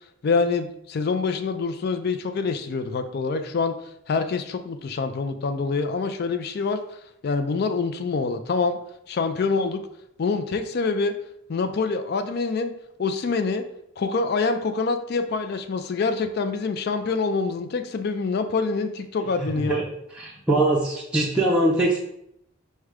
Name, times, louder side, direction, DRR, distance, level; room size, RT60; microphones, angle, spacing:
voice 1, 0.2-3.7 4.1-8.8 9.1-9.8 10.2-11.1 11.5-12.7 13.0-13.6 14.0-19.8, left 4 dB, 55° left, 8 dB, 0.4 m, -26 dB
voice 2, 20.2-22.0, right 2 dB, 5° right, -5 dB, 0.5 m, -22 dB
4.8 x 2.2 x 4.8 m, 0.75 s
head